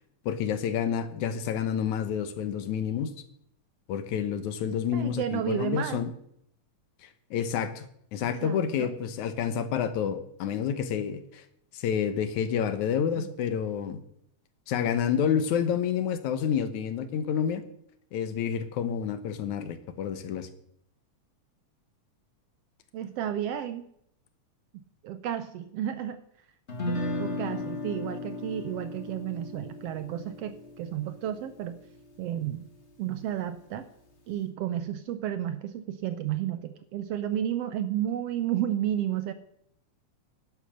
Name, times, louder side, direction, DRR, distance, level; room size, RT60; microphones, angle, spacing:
voice 1, 0.3-3.1 3.9-6.1 7.0-7.9 8.1-11.4 11.7-14.0 14.7-17.6 18.1-20.5, left 8 dB, 85° left, 11 dB, 2.5 m, -29 dB
voice 2, 4.7-6.0 8.2-8.9 13.2-13.3 22.9-23.9 24.7-26.2 27.2-31.8 32.2-32.7 33.0-33.9 34.3-39.3, right 10 dB, 75° right, 11 dB, 1.5 m, -32 dB
Guitar, 26.7-32.8, left 2 dB, 30° left, 1.7 m, -36 dB
11.0 x 10.5 x 6.5 m, 0.72 s
omnidirectional pair, 3.3 m